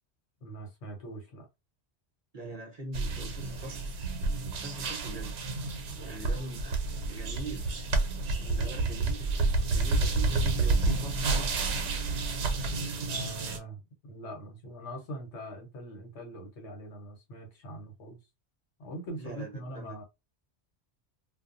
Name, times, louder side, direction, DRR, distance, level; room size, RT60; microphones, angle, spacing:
voice 1, 0.4-1.5 5.9-6.4 8.4-8.7 13.0-18.2 18.8-20.0, right 1 dB, 85° left, 1.2 m, -43 dB
voice 2, 2.3-3.8 4.6-5.4 6.0-6.7 7.1-7.7 8.5-9.3 9.7-11.7 19.2-20.0, right 2 dB, 40° right, 0.8 m, -42 dB
sound 1, 2.9-13.6, right 3 dB, 90° right, 0.9 m, -30 dB
2.3 x 2.2 x 2.5 m
omnidirectional pair, 1.1 m